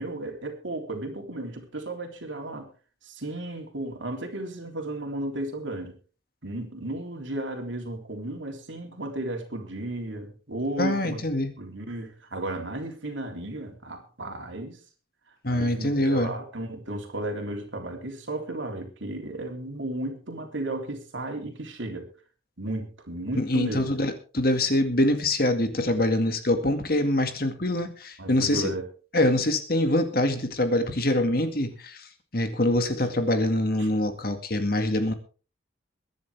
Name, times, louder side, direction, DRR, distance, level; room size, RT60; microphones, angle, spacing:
voice 1, 0.0-2.7 3.0-6.0 6.4-14.8 15.5-22.1 22.6-23.8 28.2-28.9 33.8-33.9, right 1 dB, 75° right, 3 dB, 3.4 m, -34 dB
voice 2, 10.8-11.5 15.4-16.3 23.3-28.6 29.1-32.1 32.3-35.1, left 1 dB, 50° left, 7 dB, 2.1 m, -24 dB
22.5 x 10.5 x 3.5 m, 0.36 s
head